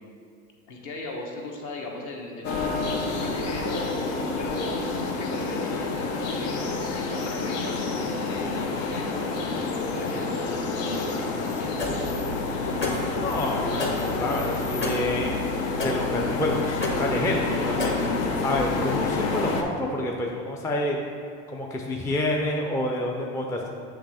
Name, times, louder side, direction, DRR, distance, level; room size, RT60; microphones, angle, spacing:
voice 1, 0.7-9.2 9.7-11.9, left 2 dB, 50° left, 0 dB, 1.2 m, -37 dB
sound 1, 2.4-19.6, left 3 dB, 75° left, 0.8 m, -28 dB
sound 2, 11.8-18.6, left 2 dB, 30° left, 1.1 m, -33 dB
voice 2, 13.1-15.4 15.8-16.6 16.9-18.0 18.4-21.0 21.5-23.7, left 1 dB, 10° left, 0 dB, 0.4 m, -28 dB
6.5 x 3.3 x 4.9 m, 2.3 s
hypercardioid pair, 95°, 38 cm